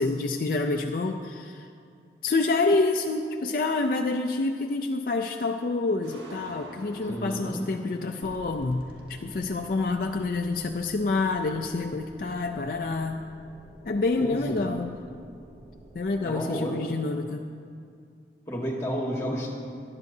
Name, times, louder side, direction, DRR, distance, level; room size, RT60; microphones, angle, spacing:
voice 1, 0.0-1.7 2.2-13.2 13.8-15.0 15.9-17.5, left 3 dB, 50° left, 4 dB, 0.4 m, -27 dB
sound 1, 4.8-5.4 5.8-11.2 11.4-12.6, equal, 80° right, 1.3 m, -50 dB
voice 2, 7.0-7.7 14.2-14.7 16.2-16.7 18.5-19.5, equal, 15° left, -1 dB, 1.5 m, -31 dB
sound 2, 8.2-16.2, equal, 30° right, 1.2 m, -50 dB
18.0 x 10.5 x 2.7 m, 2.3 s
head